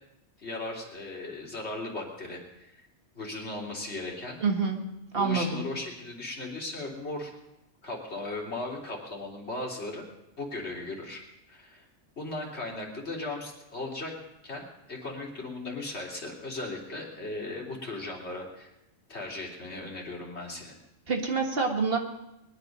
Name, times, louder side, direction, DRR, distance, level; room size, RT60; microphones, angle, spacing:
voice 1, 0.4-2.7 3.1-4.4 5.2-7.3 7.8-10.1 10.4-11.2 11.5-11.8 12.2-14.1 14.4-14.6 14.9-18.7 19.1-20.8, left 2 dB, 65° left, -2 dB, 3.5 m, -37 dB
voice 2, 4.4-4.8 5.1-5.7 21.1-22.0, right 4 dB, 55° right, 3 dB, 2.0 m, -27 dB
21.5 x 10.5 x 5.3 m, 0.90 s
omnidirectional pair, 1.2 m